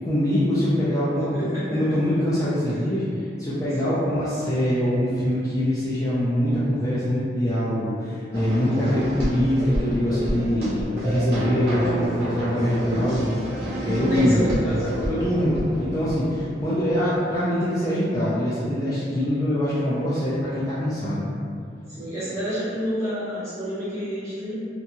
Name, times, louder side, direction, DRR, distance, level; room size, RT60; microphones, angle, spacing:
voice 1, 0.0-13.5 13.8-14.5 15.1-21.3, equal, 20° left, -11 dB, 0.4 m, -24 dB
voice 2, 1.3-2.0 3.8-4.0 13.8-14.8 21.9-24.5, equal, 15° right, -13 dB, 1.1 m, -28 dB
sound 1, 8.3-16.6, equal, 60° right, 0.8 m, -29 dB
2.8 x 2.3 x 2.7 m, 2.4 s
head